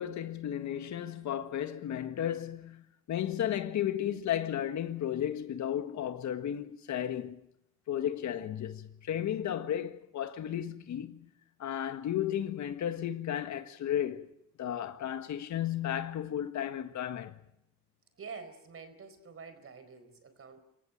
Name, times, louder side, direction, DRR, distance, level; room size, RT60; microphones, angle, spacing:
voice 1, 0.0-7.4 7.9-11.3 11.6-14.3 14.6-17.4, left 10 dB, 70° left, 1.7 m, -34 dB
voice 2, 18.2-20.6, right 5 dB, 50° right, 4.5 m, -47 dB
26.5 x 15.5 x 9.2 m
cardioid pair, 90°, 30 cm